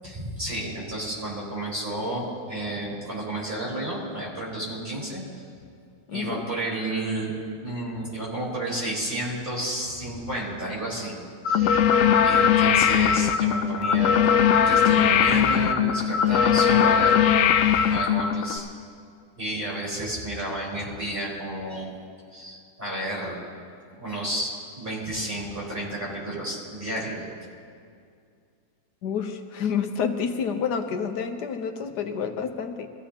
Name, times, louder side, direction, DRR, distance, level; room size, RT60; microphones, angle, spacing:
voice 1, 0.0-5.2 6.1-11.2 11.4-11.8 12.2-17.2 17.9-18.7 19.4-21.9 22.3-23.4 23.9-27.2, right 1 dB, 30° right, -6 dB, 4.6 m, -31 dB
voice 2, 6.1-6.5 29.0-32.9, left 6 dB, 85° left, 6 dB, 1.4 m, -29 dB
sound 1, 11.4-18.6, left 8 dB, 65° left, 0.8 m, -20 dB
23.0 x 15.5 x 2.9 m, 2.3 s
omnidirectional pair, 1.7 m